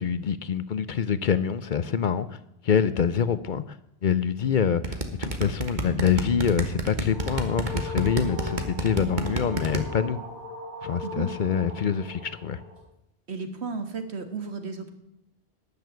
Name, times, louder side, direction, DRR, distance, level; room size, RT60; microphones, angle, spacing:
voice 1, 0.0-2.4 2.6-3.8 4.0-10.2 10.8-12.6, left 7 dB, 55° left, 14 dB, 0.7 m, -25 dB
sound 1, 4.8-9.8, right 2 dB, 45° right, 1.5 m, -28 dB
sound 2, 6.8-12.8, left 2 dB, 20° left, 4.2 m, -40 dB
voice 2, 13.3-14.9, right 4 dB, 80° right, 7 dB, 1.8 m, -34 dB
12.0 x 6.9 x 9.3 m, 0.85 s
omnidirectional pair, 1.1 m